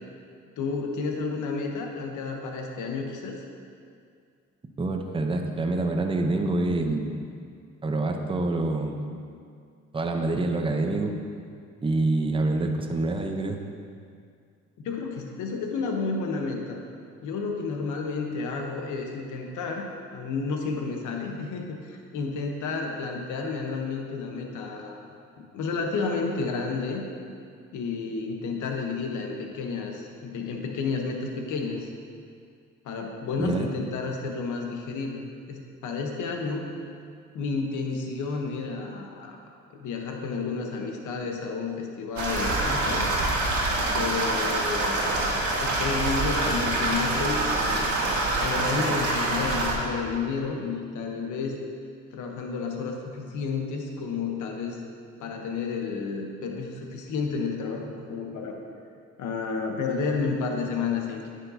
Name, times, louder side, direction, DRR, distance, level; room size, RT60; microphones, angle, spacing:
voice 1, 0.6-3.4 14.8-16.8 17.2-25.0 25.4-27.0 27.7-31.9 32.8-36.7 37.3-39.4 39.7-43.1 43.9-45.0 45.6-47.8 48.4-51.6 52.1-54.8 55.2-58.6 59.2-61.3, left 4 dB, 80° left, 2 dB, 0.9 m, -31 dB
voice 2, 4.8-7.1 7.8-9.1 9.9-11.1 11.8-13.6 33.4-33.7, right 2 dB, 15° right, 4 dB, 0.6 m, -26 dB
sound 1, 42.2-49.7, right 2 dB, 75° right, 1.5 m, -25 dB
9.8 x 6.5 x 2.7 m, 2.3 s
cardioid pair, 90°, 30 cm